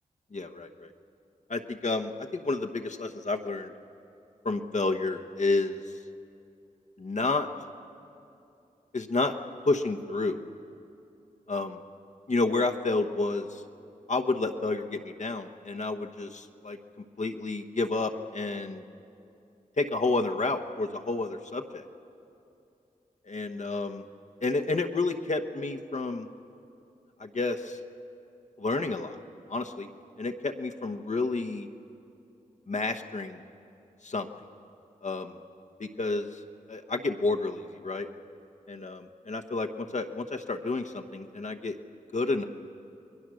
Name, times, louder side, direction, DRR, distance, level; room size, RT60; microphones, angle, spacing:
voice 1, 0.3-0.9 1.5-3.7 4.4-5.8 7.0-7.5 8.9-9.3 9.6-10.4 11.5-11.7 12.3-13.6 14.1-16.8 17.2-18.8 19.8-21.8 23.3-24.0 24.4-26.3 27.2-27.8 28.6-29.2 29.5-29.9 30.2-31.7 32.7-33.4 34.0-34.3 35.0-35.4 35.8-36.4 36.7-38.1 38.7-41.8 42.1-42.4, left 3 dB, 55° left, 5 dB, 1.1 m, -30 dB
29.0 x 21.0 x 6.4 m, 2.7 s
cardioid pair, 50°, 15 cm